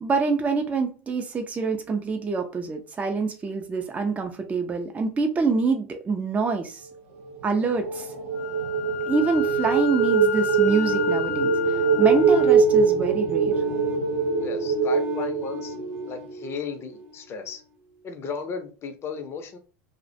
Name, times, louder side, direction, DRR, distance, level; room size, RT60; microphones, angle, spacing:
voice 1, 0.0-6.9 7.4-8.1 9.1-13.5, right 4 dB, 20° right, 0.4 m, -26 dB
sound 1, 7.2-16.1, right 6 dB, 70° right, 0.7 m, -23 dB
Wind instrument woodwind instrument, 8.4-12.5, left 13 dB, 85° left, 0.4 m, -32 dB
sound 2, 10.7-17.4, left 2 dB, 45° right, 0.9 m, -35 dB
voice 2, 14.4-17.6 18.0-19.6, left 5 dB, 30° left, 0.6 m, -35 dB
2.3 x 2.1 x 2.6 m
hypercardioid pair, 95°, 8 cm